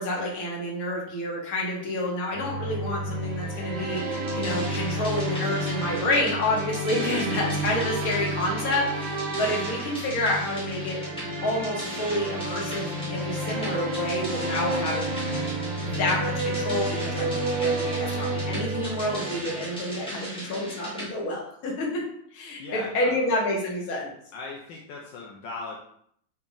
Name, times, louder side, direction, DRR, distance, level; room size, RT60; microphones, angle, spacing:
voice 1, 0.0-11.0 11.4-15.2 15.8-22.0 22.3-24.1, left 1 dB, 55° left, -2 dB, 1.2 m, -29 dB
sound 1, 2.3-20.1, right 2 dB, 85° right, 0.7 m, -31 dB
sound 2, 3.9-21.1, equal, 5° left, 0.8 m, -38 dB
voice 2, 22.6-23.3 24.3-25.8, left 3 dB, 75° left, -2 dB, 1.2 m, -38 dB
4.0 x 2.3 x 3.8 m, 0.67 s
omnidirectional pair, 2.2 m